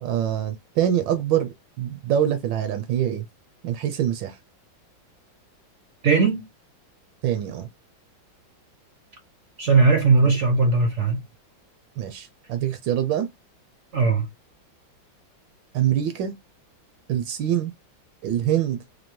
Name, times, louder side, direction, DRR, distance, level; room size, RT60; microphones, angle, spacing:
voice 1, 0.0-3.2 3.6-4.4 7.2-7.7 12.0-13.3 15.7-16.4 17.1-17.7 18.2-18.8, right 10 dB, 75° right, 1.3 m, -24 dB
voice 2, 6.0-6.4 9.6-11.2 13.9-14.3, right 4 dB, 60° right, 0.7 m, -18 dB
4.3 x 2.7 x 3.0 m
omnidirectional pair, 2.1 m